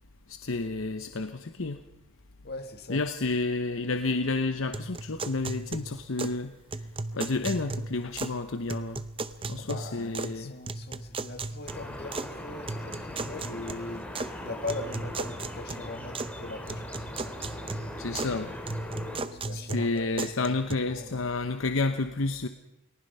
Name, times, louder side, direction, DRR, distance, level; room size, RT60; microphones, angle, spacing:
voice 1, 0.3-1.8 2.9-6.5 7.1-9.0 9.5-10.5 18.0-18.5 19.5-22.5, left 3 dB, 65° left, 0.9 m, -30 dB
voice 2, 2.4-3.1 9.6-17.1 19.3-21.3, left 2 dB, 50° left, 1.8 m, -40 dB
sound 1, 4.7-6.4 6.7-8.4 8.7-10.4 10.7-12.3 12.7-14.3 14.7-16.4 16.7-18.4 18.7-20.7, right 3 dB, 25° right, 0.7 m, -36 dB
sound 2, 11.7-19.2, left 1 dB, 5° left, 3.6 m, -40 dB
29.5 x 19.0 x 5.6 m
head